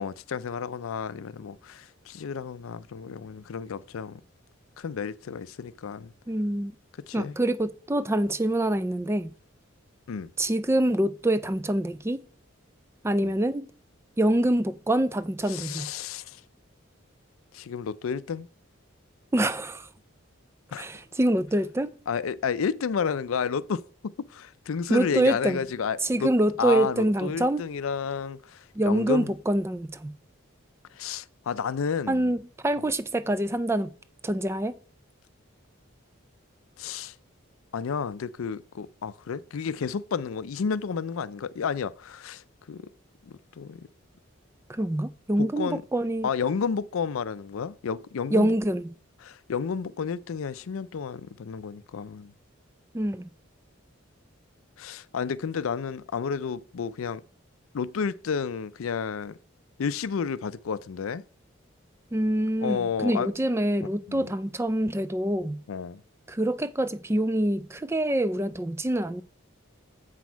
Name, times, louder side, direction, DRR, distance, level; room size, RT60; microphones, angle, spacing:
voice 1, 0.0-4.2 4.8-6.1 7.1-7.3 10.1-10.3 13.2-13.3 15.5-16.4 17.5-18.5 20.7-20.9 22.1-26.3 26.6-29.3 31.0-32.3 36.8-37.1 37.7-42.4 42.7-42.8 43.6-43.9 45.4-45.8 46.2-48.5 49.2-52.3 54.8-57.2 57.7-59.4 59.8-61.2 62.6-63.3 63.8-64.3 65.7-66.0, left 6 dB, 80° left, 0.4 m, -31 dB
voice 2, 6.3-6.7 7.1-9.3 10.4-12.2 13.0-13.7 14.2-15.9 19.3-19.9 20.8-21.9 24.9-25.6 26.0-27.6 28.7-30.1 32.1-33.9 34.2-34.8 44.7-46.3 48.3-48.9 52.9-53.3 62.1-65.6 66.3-69.2, right 1 dB, 10° right, 0.3 m, -25 dB
8.2 x 6.1 x 4.6 m
head